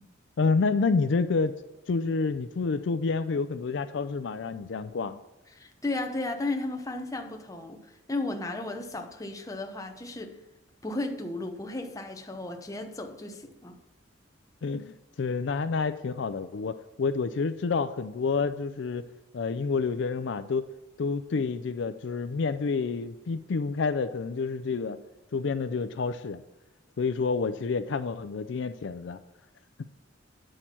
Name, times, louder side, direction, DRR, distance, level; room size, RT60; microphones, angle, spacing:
voice 1, 0.4-1.5 1.9-5.2 14.6-19.1 19.3-20.6 21.0-25.0 25.3-26.4 27.0-29.2, left 4 dB, 65° left, 0.4 m, -28 dB
voice 2, 5.5-10.4 10.8-13.8, left 2 dB, 15° left, 0.8 m, -34 dB
9.0 x 6.4 x 5.8 m
head